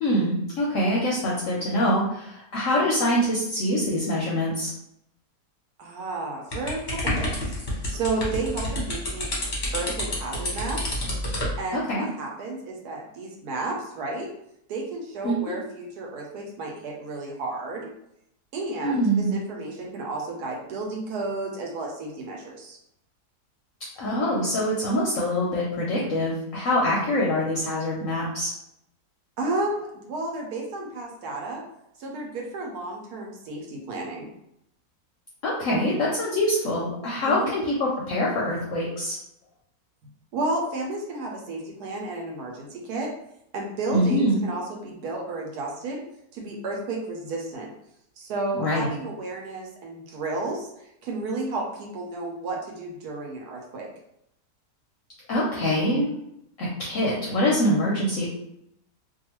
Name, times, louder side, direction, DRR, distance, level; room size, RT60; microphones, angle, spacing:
voice 1, 0.0-4.7 11.7-12.1 15.2-15.6 18.8-19.4 24.0-28.5 35.4-39.2 43.9-44.4 48.6-48.9 55.3-56.1 56.6-58.3, equal, 65° left, -4 dB, 0.8 m, -24 dB
voice 2, 5.8-9.3 9.7-10.8 11.6-14.3 14.7-17.9 18.5-22.8 29.4-31.6 32.0-34.3 37.3-37.5 40.3-43.1 43.5-46.0 46.3-47.7 48.2-53.9, right 2 dB, 75° right, 0 dB, 1.1 m, -32 dB
sound 1, 6.5-11.6, left 1 dB, 40° left, 0.7 m, -29 dB
2.7 x 2.3 x 2.9 m, 0.77 s
omnidirectional pair, 1.8 m